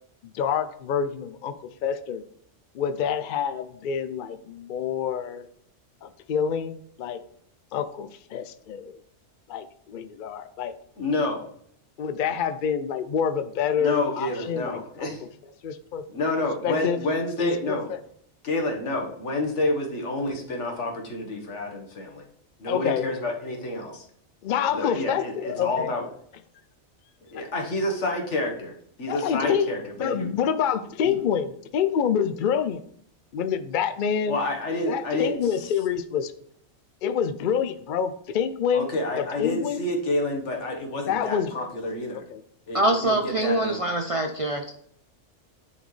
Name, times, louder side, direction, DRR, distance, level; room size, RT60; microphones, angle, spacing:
voice 1, 0.2-1.5 1.8-2.2 2.7-5.5 6.0-7.2 7.7-9.0 9.5-10.7 12.0-15.1 15.6-16.0 16.6-17.0 17.4-18.0 22.7-23.1 24.4-25.9 27.3-27.4 29.1-29.7 30.0-32.9 33.3-34.4 34.9-36.3 37.0-38.9 39.4-39.8 41.1-41.5 42.3-42.4, left 8 dB, 60° left, 10 dB, 0.5 m, -27 dB
voice 2, 11.0-11.4 13.8-15.2 16.1-17.9 18.4-22.2 22.6-24.1 24.7-26.0 27.3-30.3 31.0-31.2 34.3-35.6 38.7-42.2 42.7-43.8, left 2 dB, 80° left, 2 dB, 1.6 m, -29 dB
voice 3, 42.7-44.7, right 1 dB, 45° right, 4 dB, 0.4 m, -24 dB
9.9 x 4.2 x 3.2 m, 0.64 s
omnidirectional pair, 1.2 m